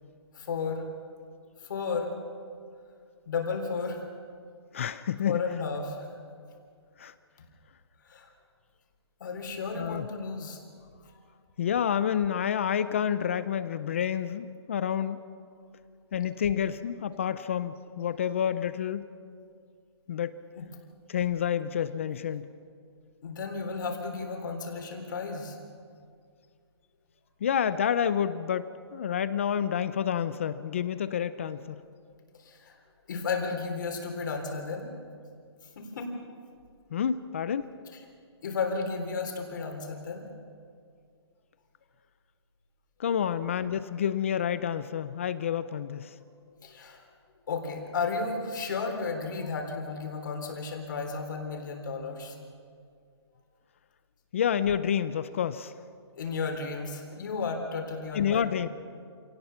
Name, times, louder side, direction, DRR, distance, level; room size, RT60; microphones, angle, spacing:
voice 1, 0.3-0.9 1.6-2.1 3.3-4.0 5.2-6.1 8.0-8.3 9.2-10.6 20.6-20.7 23.2-25.6 32.4-32.7 33.1-34.9 35.8-36.1 37.9-38.0 38.4-40.2 46.6-47.0 47.5-52.4 56.2-58.5, left 4 dB, 45° left, 3 dB, 3.6 m, -33 dB
voice 2, 4.7-5.4 7.0-7.1 9.7-10.1 11.6-15.2 16.1-19.0 20.1-20.4 21.1-22.5 27.4-31.8 36.9-37.7 43.0-46.1 54.3-55.7 58.1-58.7, left 8 dB, 30° left, 14 dB, 0.5 m, -29 dB
27.5 x 18.0 x 5.8 m, 2.2 s
hypercardioid pair, 170°, 15 cm